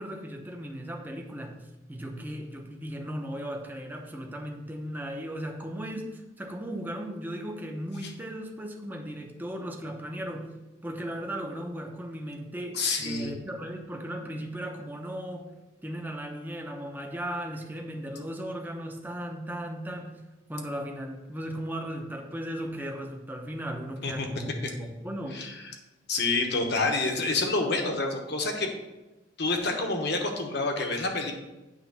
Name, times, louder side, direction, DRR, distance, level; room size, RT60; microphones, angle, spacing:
voice 1, 0.0-1.6 1.9-10.5 10.8-15.5 15.8-20.2 20.5-25.4, equal, 10° right, 2 dB, 0.7 m, -36 dB
voice 2, 12.7-13.3 24.0-24.3 24.6-24.7 25.3-25.6 26.1-28.7 29.4-31.3, left 3 dB, 60° left, 3 dB, 1.1 m, -28 dB
9.1 x 3.1 x 5.8 m, 1.0 s
head